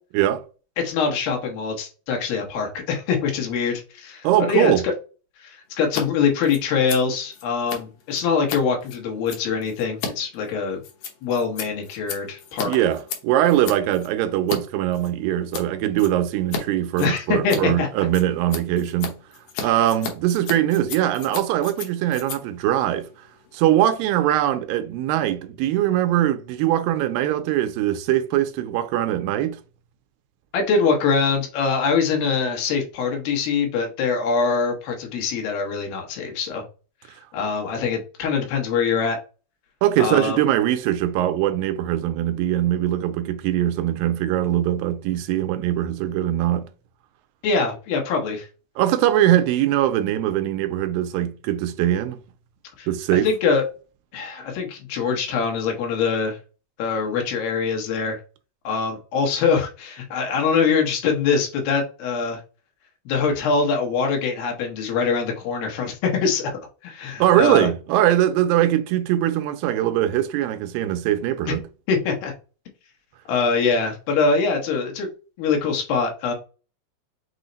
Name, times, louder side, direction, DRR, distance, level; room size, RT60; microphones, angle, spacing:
voice 1, 0.8-4.9 5.4-10.8 11.2-12.7 17.0-17.9 19.5-19.8 30.5-36.6 37.3-39.2 40.0-40.4 47.4-48.5 52.8-52.9 53.2-53.6 54.1-56.4 56.8-58.2 58.6-62.4 63.1-66.5 66.8-67.7 71.5-71.6 71.9-72.3 73.3-75.1 75.4-76.3, left 5 dB, 80° left, 2.9 m, -23 dB
voice 2, 4.2-4.8 12.6-19.1 19.6-23.1 23.5-29.6 39.8-46.7 48.8-52.2 52.9-53.3 67.2-71.6, right 12 dB, 80° right, 2.2 m, -21 dB
Scissors, 5.8-6.0 6.3-14.6 14.9-15.7 16.0-16.6 16.9-23.7, left 6 dB, 65° left, 1.9 m, -35 dB
6.2 x 2.1 x 3.9 m
omnidirectional pair, 4.1 m